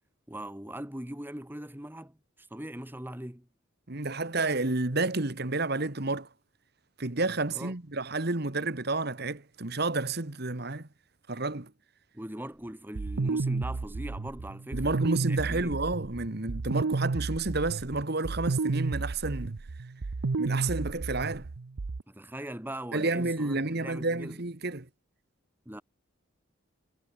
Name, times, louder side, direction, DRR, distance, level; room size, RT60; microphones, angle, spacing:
voice 1, 0.3-3.5 7.5-7.7 12.1-15.8 22.1-24.4 25.6-25.8, right 1 dB, 10° right, 1.6 m, -40 dB
voice 2, 3.9-6.3 7.0-10.9 11.3-11.7 14.7-19.6 20.4-21.5 22.9-24.9, right 3 dB, 50° right, 1.6 m, -30 dB
sound 1, 12.9-22.0, right 3 dB, 80° right, 0.7 m, -32 dB
head